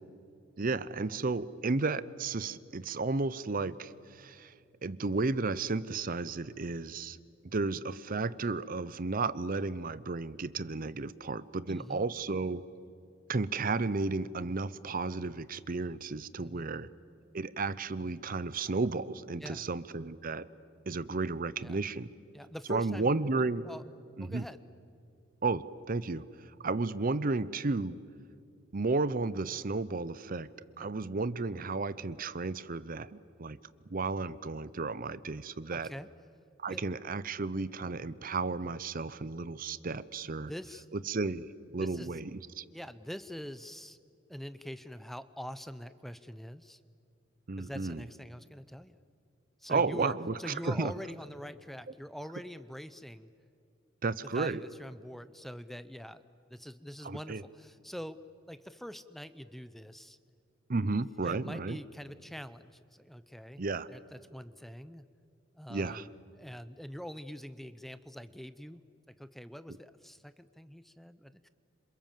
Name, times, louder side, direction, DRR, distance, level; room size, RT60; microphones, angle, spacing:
voice 1, 0.6-4.5 4.8-7.2 7.5-12.6 13.3-16.9 17.3-20.5 20.9-22.1 22.7-23.7 24.2-24.5 25.4-26.3 26.6-28.0 28.7-30.5 30.8-33.6 33.9-35.9 36.6-40.5 40.9-42.3 42.6-42.7 47.5-48.0 49.7-50.9 54.0-54.6 57.0-57.4 60.7-61.8 63.6-63.9 65.7-66.1, right 3 dB, 45° right, 16 dB, 0.7 m, -33 dB
voice 2, 11.7-12.1 16.4-16.7 19.4-19.7 21.6-21.8 22.3-23.1 23.6-23.8 24.2-24.6 30.8-30.9 35.7-36.1 36.7-36.8 40.5-40.9 41.8-42.1 42.7-44.0 44.3-46.8 47.6-49.0 49.6-53.3 54.2-56.2 56.5-58.2 58.5-60.2 61.2-63.6 63.9-65.0 65.5-68.8 69.2-71.5, equal, ahead, 13 dB, 0.6 m, -44 dB
27.5 x 27.0 x 7.5 m, 2.5 s
head